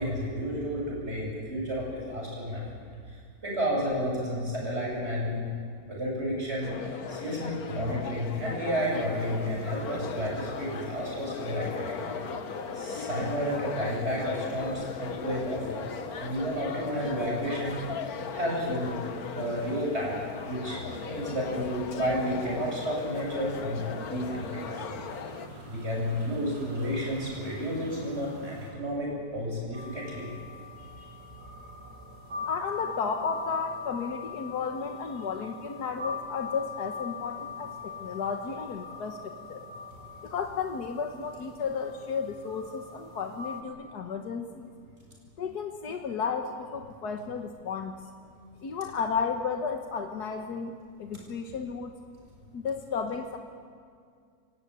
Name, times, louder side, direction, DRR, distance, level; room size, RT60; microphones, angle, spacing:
voice 1, 0.0-2.9 3.4-5.5 5.9-6.7 7.1-11.9 12.7-15.9 16.2-17.8 18.3-19.0 19.3-20.2 20.5-25.0 25.7-30.3 30.8-31.2, equal, 40° right, -3 dB, 8.3 m, -31 dB
sound 1, 6.6-25.5, left 6 dB, 70° left, 1.6 m, -38 dB
sound 2, 8.8-28.7, equal, 65° right, 6.2 m, -48 dB
sound 3, 29.7-43.6, left 5 dB, 80° right, 2.1 m, -42 dB
voice 2, 32.4-39.6 40.2-44.7 45.4-48.0 48.6-51.9 52.5-53.4, left 5 dB, 85° left, 5 dB, 1.8 m, -33 dB
28.0 x 16.5 x 9.3 m, 2.2 s
omnidirectional pair, 1.7 m